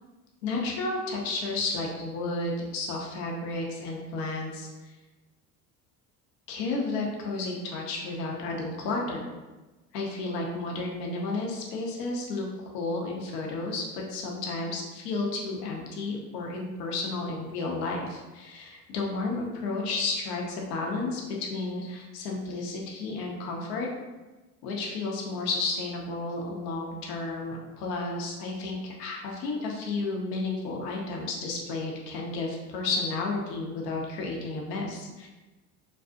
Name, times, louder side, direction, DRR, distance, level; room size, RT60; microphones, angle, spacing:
voice 1, 0.4-4.9 6.5-9.3 9.9-12.5 12.7-23.9 24.6-35.3, left 3 dB, 85° left, -1 dB, 0.6 m, -32 dB
2.4 x 2.3 x 2.3 m, 1.2 s
hypercardioid pair, 70°, 47 cm